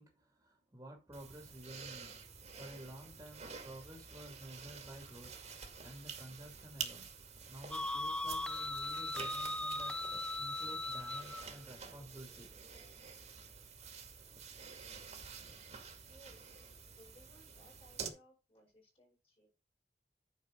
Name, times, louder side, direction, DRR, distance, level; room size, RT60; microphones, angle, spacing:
voice 1, 0.0-5.4 5.8-12.5 13.0-13.1, right 1 dB, 15° right, 2.5 m, -52 dB
sound 1, 1.1-18.1, right 6 dB, 40° right, 2.3 m, -49 dB
sound 2, 7.7-11.4, left 2 dB, 5° left, 0.5 m, -38 dB
voice 2, 16.1-16.6 16.8-19.5, equal, 35° left, 5.9 m, -63 dB
9.7 x 6.5 x 3.9 m
head